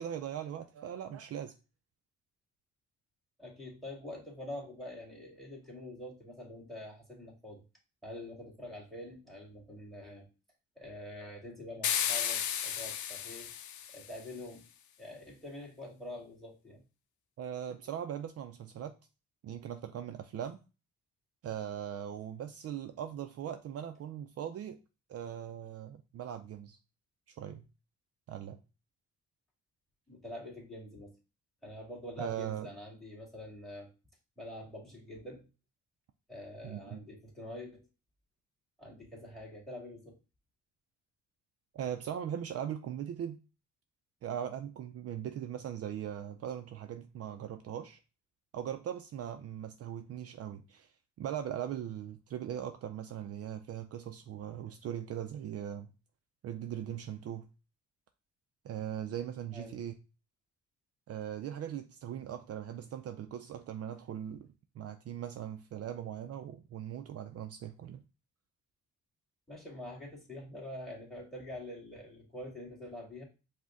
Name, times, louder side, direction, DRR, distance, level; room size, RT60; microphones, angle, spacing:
voice 1, 0.0-1.5 17.4-18.9 19.4-20.6 21.4-24.8 25.1-26.8 27.3-27.6 28.3-28.6 32.2-32.7 36.6-37.0 41.7-43.4 44.2-48.0 48.5-50.9 51.2-55.9 56.4-57.5 58.6-59.9 61.1-64.5 64.7-68.0, right 9 dB, 55° right, 0.5 m, -40 dB
voice 2, 3.4-7.6 8.0-10.3 10.8-13.5 13.9-14.7 15.0-16.8 30.1-31.2 31.6-33.9 34.4-35.5 36.3-37.9 38.8-40.2 59.5-59.8 69.5-73.2, left 1 dB, ahead, 2.0 m, -45 dB
sound 1, 11.8-14.2, left 9 dB, 70° left, 0.6 m, -34 dB
5.0 x 2.2 x 3.7 m
cardioid pair, 90°, 30 cm